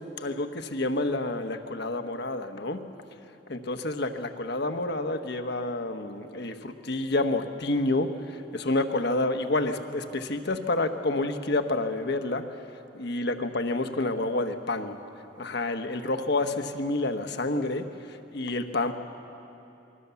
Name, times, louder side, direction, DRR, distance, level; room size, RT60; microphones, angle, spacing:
voice 1, 0.0-2.8 3.5-12.6 12.9-15.0 15.4-19.0, left 2 dB, 65° left, 7 dB, 1.2 m, -29 dB
27.5 x 21.5 x 7.1 m, 2.9 s
head